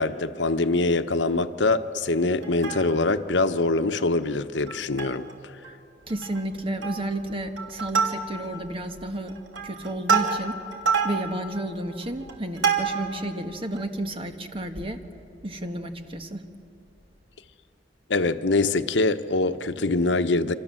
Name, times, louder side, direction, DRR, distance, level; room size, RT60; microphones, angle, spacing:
voice 1, 0.0-5.3 18.1-20.5, left 3 dB, 85° left, 1.0 m, -24 dB
Plucked string instrument, 2.4-3.2 3.6-3.7 4.0-4.2 4.7-5.3 5.6-5.7 6.1-6.5 6.8-7.2 7.6-8.6 9.1-13.2 13.8-13.9, right 6 dB, 90° right, 2.9 m, -27 dB
voice 2, 6.1-9.3 9.6-10.5 11.0-15.0 15.4-16.4, right 1 dB, 30° right, 1.6 m, -32 dB
28.5 x 26.0 x 7.7 m
head